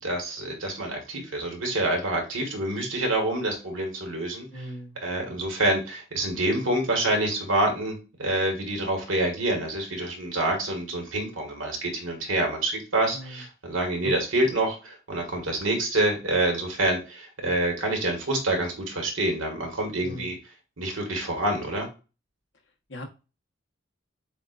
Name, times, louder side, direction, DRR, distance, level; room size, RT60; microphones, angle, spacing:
voice 1, 0.0-4.6 5.0-20.4 20.8-21.9, right 1 dB, 80° right, 2 dB, 1.6 m, -27 dB
voice 2, 4.5-5.0 13.1-13.4 14.0-14.1 20.0-20.3 22.9-23.0, equal, 60° left, 1 dB, 1.1 m, -38 dB
7.1 x 2.5 x 2.5 m, 0.31 s
head